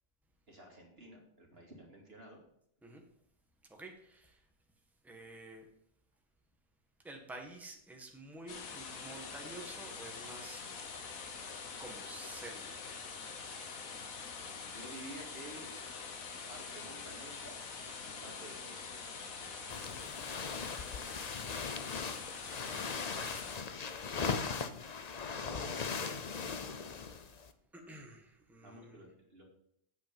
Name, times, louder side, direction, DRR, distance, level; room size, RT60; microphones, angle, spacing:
voice 1, 0.5-2.4 14.6-15.7 16.5-17.6 18.0-18.9 28.6-29.4, right 1 dB, 45° right, 0 dB, 2.6 m, -51 dB
voice 2, 3.7-4.4 5.0-5.7 7.0-10.6 11.8-12.8 22.4-23.0 27.7-29.0, right 2 dB, ahead, 2 dB, 1.5 m, -50 dB
sound 1, 8.5-23.6, left 5 dB, 80° left, 1.7 m, -45 dB
sound 2, 19.7-27.5, left 5 dB, 40° left, 0.6 m, -39 dB
8.6 x 8.4 x 5.4 m, 0.71 s
omnidirectional pair, 1.4 m